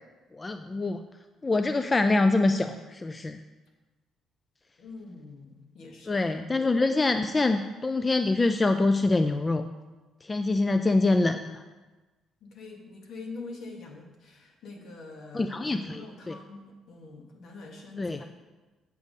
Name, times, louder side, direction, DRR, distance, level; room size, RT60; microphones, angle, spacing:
voice 1, 0.3-1.0 1.4-3.4 6.1-9.7 10.2-11.6 15.3-16.3 18.0-18.2, left 2 dB, 20° left, 8 dB, 0.3 m, -25 dB
voice 2, 4.8-6.2 12.4-18.3, left 3 dB, 60° left, 1 dB, 1.6 m, -44 dB
8.3 x 6.5 x 5.3 m, 1.2 s
cardioid pair, 135°, 0 cm